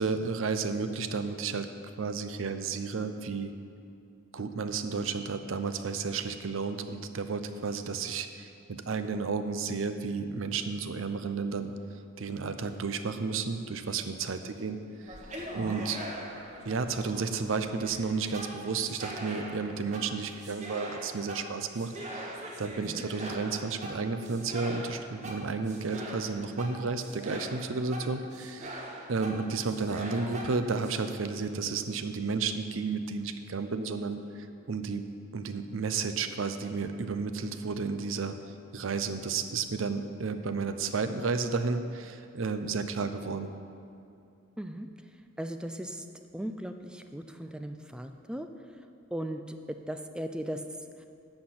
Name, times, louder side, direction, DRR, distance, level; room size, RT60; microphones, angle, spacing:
voice 1, 0.0-1.7 2.0-3.5 4.3-11.7 12.2-14.8 15.1-15.2 15.5-16.0 16.6-28.8 29.1-35.0 35.3-38.4 38.7-43.5, right 4 dB, 75° right, 9 dB, 0.6 m, -32 dB
sound 1, 15.0-31.0, right 1 dB, 35° right, 1.2 m, -42 dB
voice 2, 44.6-44.9 45.4-46.1 46.3-48.5 49.1-50.6 51.0-51.1, equal, 5° right, 7 dB, 0.4 m, -37 dB
11.5 x 4.4 x 7.8 m, 2.5 s
head